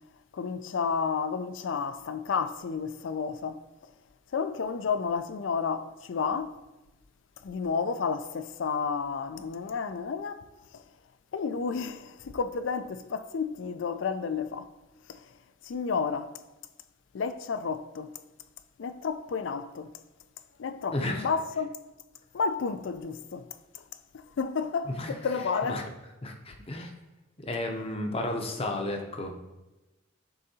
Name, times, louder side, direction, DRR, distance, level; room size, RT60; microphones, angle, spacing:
voice 1, 0.3-3.6 4.3-6.5 7.4-10.4 11.3-14.7 15.1-15.2 15.7-16.3 17.1-18.1 18.8-19.9 20.6-21.7 22.3-23.4 24.4-25.9, left 5 dB, 65° left, 0.4 m, -31 dB
voice 2, 20.9-21.3 24.9-25.1 25.6-25.8 26.2-26.9 27.4-29.4, left 1 dB, 30° left, 0.7 m, -32 dB
11.0 x 3.8 x 2.8 m
head